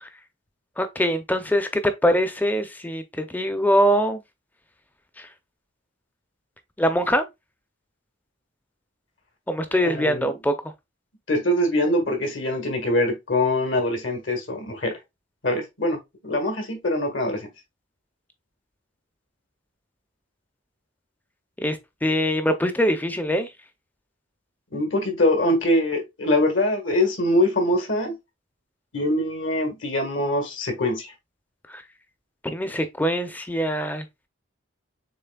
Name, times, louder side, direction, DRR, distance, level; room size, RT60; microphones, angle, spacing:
voice 1, 0.8-4.2 5.2-5.3 6.8-7.2 9.5-10.5 21.6-23.5 31.7-31.8 32.4-34.1, equal, 10° left, 0.5 m, -23 dB
voice 2, 9.8-10.3 11.3-15.0 15.4-17.5 24.7-28.2 28.9-31.1, left 1 dB, 65° left, 1.6 m, -23 dB
6.8 x 3.2 x 2.3 m
head